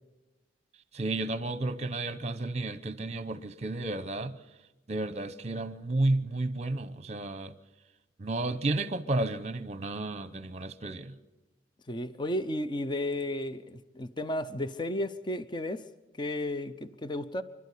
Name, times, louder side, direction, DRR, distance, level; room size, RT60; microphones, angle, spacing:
voice 1, 0.9-4.4 4.9-7.5 8.2-11.1, right 2 dB, 40° right, 0.9 m, -32 dB
voice 2, 11.9-15.8 16.2-17.4, left 1 dB, 25° left, 0.7 m, -33 dB
26.5 x 12.5 x 8.5 m
head